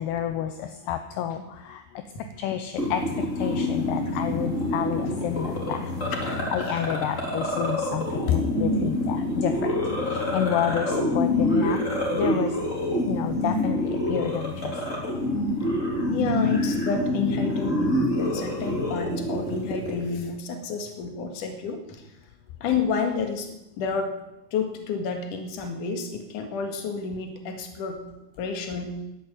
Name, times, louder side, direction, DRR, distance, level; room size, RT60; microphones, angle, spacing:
voice 1, 0.0-1.8 2.4-3.0 3.4-5.9 6.3-9.5 10.1-11.8 12.1-12.5 13.1-14.7, left 10 dB, 75° left, 8 dB, 2.7 m, -29 dB
sound 1, 2.8-20.0, left 1 dB, 20° left, 3.6 m, -27 dB
voice 2, 16.1-22.0 22.6-23.5 23.8-24.1 24.5-28.0 28.4-28.9, left 5 dB, 55° left, 5 dB, 3.0 m, -29 dB
12.5 x 11.0 x 8.9 m, 0.93 s
omnidirectional pair, 5.0 m